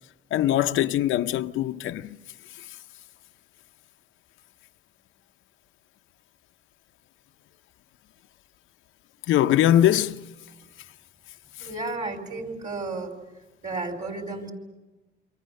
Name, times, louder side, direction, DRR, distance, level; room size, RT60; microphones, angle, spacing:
voice 1, 0.3-2.2 9.3-10.3, left 12 dB, 85° left, 0.7 m, -22 dB
voice 2, 11.6-13.1 13.6-14.5, right 3 dB, 40° right, 4.5 m, -32 dB
28.0 x 25.0 x 6.5 m
cardioid pair, 90°, 20 cm